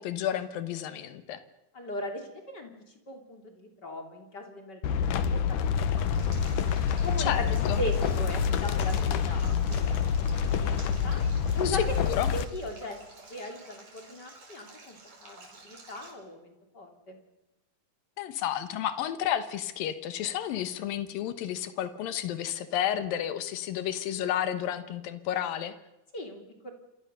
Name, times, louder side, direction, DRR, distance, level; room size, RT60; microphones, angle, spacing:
voice 1, 0.0-1.4 7.2-7.8 11.6-12.3 18.2-25.7, left 10 dB, 90° left, 11 dB, 3.0 m, -31 dB
voice 2, 1.7-2.7 3.1-5.4 5.7-6.1 6.4-6.5 7.0-7.4 7.8-10.1 10.5-11.2 11.5-11.8 12.3-13.0 13.3-17.2 26.1-26.7, left 1 dB, 30° left, 4 dB, 3.2 m, -38 dB
sound 1, 4.8-12.4, left 7 dB, 75° left, 2.7 m, -27 dB
Stream, 6.1-16.1, right 3 dB, 50° right, 6.0 m, -51 dB
27.5 x 24.0 x 6.8 m, 1.0 s
omnidirectional pair, 3.9 m